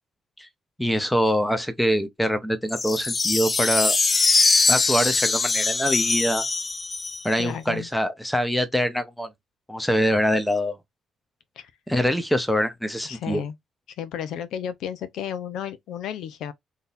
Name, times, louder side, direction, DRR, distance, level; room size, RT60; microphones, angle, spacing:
voice 1, 0.8-4.0 4.7-6.4 7.2-9.3 9.7-10.8 11.9-13.4, equal, 5° left, 0.8 m, -24 dB
sound 1, 2.7-7.4, left 3 dB, 30° left, 0.4 m, -22 dB
voice 2, 7.4-7.9 11.6-11.7 13.0-13.6 14.0-16.5, left 9 dB, 80° left, 0.6 m, -33 dB
3.7 x 2.8 x 2.5 m
cardioid pair, 90°, 0 cm